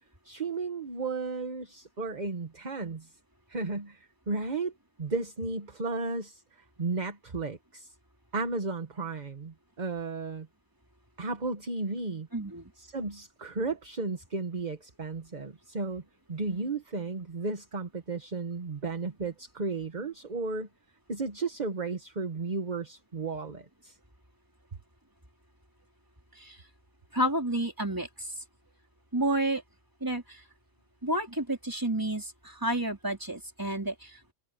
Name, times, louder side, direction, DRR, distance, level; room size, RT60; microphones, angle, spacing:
voice 1, 0.2-3.1 3.5-4.7 5.0-6.4 6.8-7.9 8.3-10.5 11.2-12.3 12.8-16.0 16.3-20.7 21.1-24.0, right 3 dB, 40° right, 1.4 m, -34 dB
voice 2, 12.3-12.7 26.4-26.6 27.1-28.4 29.1-29.6 30.0-30.4 31.0-34.3, right 1 dB, 15° right, 4.0 m, -30 dB
omnidirectional pair, 1.2 m